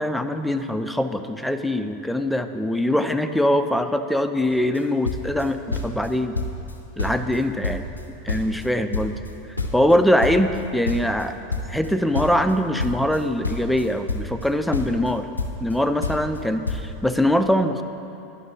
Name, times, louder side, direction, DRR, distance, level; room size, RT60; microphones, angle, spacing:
voice 1, 0.0-6.4 7.0-7.9 8.2-9.2 9.7-11.4 11.7-15.3 15.6-17.8, left 1 dB, ahead, 8 dB, 0.4 m, -22 dB
sound 1, 4.5-4.8 5.0-6.1 6.3-6.7 7.0-8.7 8.9-11.9 12.1-14.5 14.7-15.7 16.0-16.4 16.7-16.8, left 3 dB, 85° left, 0.6 m, -28 dB
10.5 x 5.3 x 3.8 m, 2.8 s
figure-of-eight pair, 85°, 0 cm